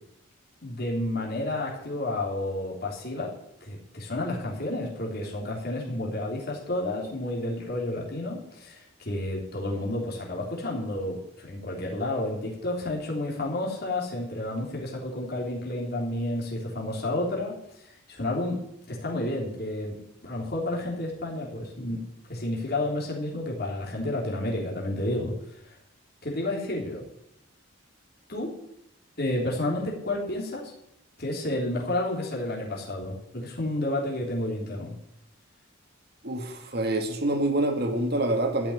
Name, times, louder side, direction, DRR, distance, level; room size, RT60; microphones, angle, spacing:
voice 1, 0.6-3.3 3.6-18.6 18.9-19.9 20.2-22.0 22.3-25.8 26.2-27.0 28.3-28.5 29.2-30.7 31.2-35.0, left 1 dB, 45° left, -3 dB, 3.2 m, -31 dB
voice 2, 36.2-38.7, right 1 dB, 50° right, 5 dB, 2.1 m, -26 dB
13.5 x 6.1 x 9.8 m, 0.78 s
head